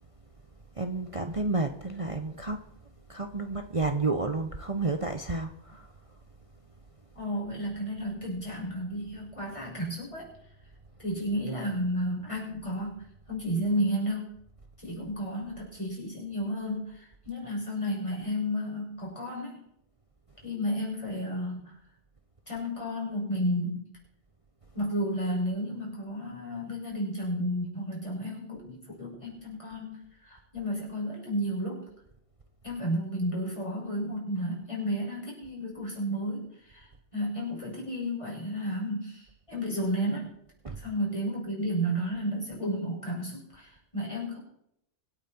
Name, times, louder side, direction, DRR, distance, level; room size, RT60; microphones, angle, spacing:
voice 1, 0.7-2.7 3.1-6.2 40.6-40.8, right 3 dB, 30° right, 0.9 m, -31 dB
voice 2, 7.1-10.3 11.0-14.3 14.8-19.6 20.4-21.7 22.5-23.9 24.7-31.8 32.6-40.3 40.8-44.4, equal, 25° left, 6.2 m, -32 dB
25.0 x 9.0 x 4.5 m
omnidirectional pair, 1.2 m